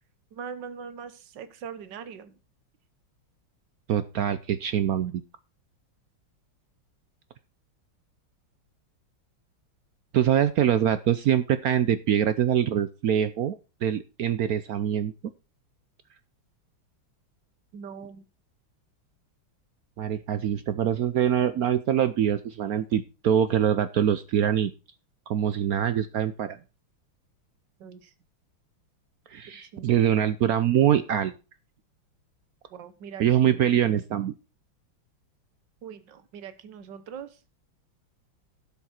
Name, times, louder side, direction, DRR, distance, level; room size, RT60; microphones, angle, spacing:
voice 1, 0.3-2.4 17.7-18.2 27.8-28.1 29.7-30.0 32.7-33.2 35.8-37.4, right 7 dB, 60° right, 12 dB, 1.7 m, -41 dB
voice 2, 3.9-5.2 10.1-15.1 20.0-24.7 25.3-26.6 29.3-31.3 33.2-34.3, right 10 dB, 80° right, 13 dB, 0.8 m, -24 dB
12.0 x 7.3 x 4.3 m, 0.30 s
omnidirectional pair, 2.3 m